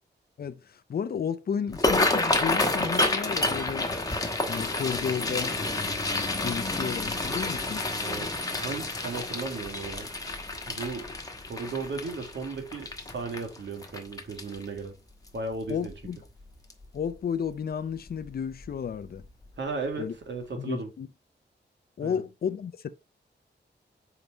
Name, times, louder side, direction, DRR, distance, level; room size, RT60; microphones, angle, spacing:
voice 1, 0.4-3.9 4.5-5.5 6.4-7.8 15.7-16.2 16.9-19.2 20.0-20.1 20.5-21.1 22.0-22.9, left 7 dB, 55° left, 0.5 m, -32 dB
sound 1, 1.7-14.8 15.3-15.5 15.9-16.3 16.7-16.9 18.1-18.3 18.6-18.8 19.2-19.3, left 2 dB, 20° left, 1.1 m, -29 dB
voice 2, 7.9-10.1 10.7-11.1 11.5-14.9 15.3-15.9 19.6-20.9 22.0-22.2, right 4 dB, 75° right, 2.0 m, -35 dB
5.4 x 4.7 x 4.1 m
wide cardioid pair, 165°, 19 cm